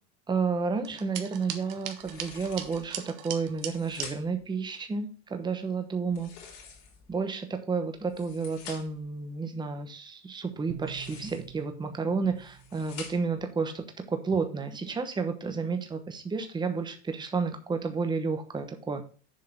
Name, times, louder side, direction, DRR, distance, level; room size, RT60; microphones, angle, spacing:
voice 1, 0.3-6.5 7.1-19.1, right 4 dB, 15° right, 7 dB, 1.0 m, -31 dB
sound 1, 0.8-4.1, right 10 dB, 65° right, 1.3 m, -39 dB
sound 2, 2.0-2.9 3.5-4.5 6.1-7.1 7.9-9.1 10.7-11.6 12.2-13.4, left 6 dB, 65° left, 3.3 m, -47 dB
sound 3, 10.7-14.0, right 10 dB, 35° right, 0.9 m, -48 dB
7.4 x 4.8 x 5.7 m, 0.38 s
supercardioid pair, 125°, 34 cm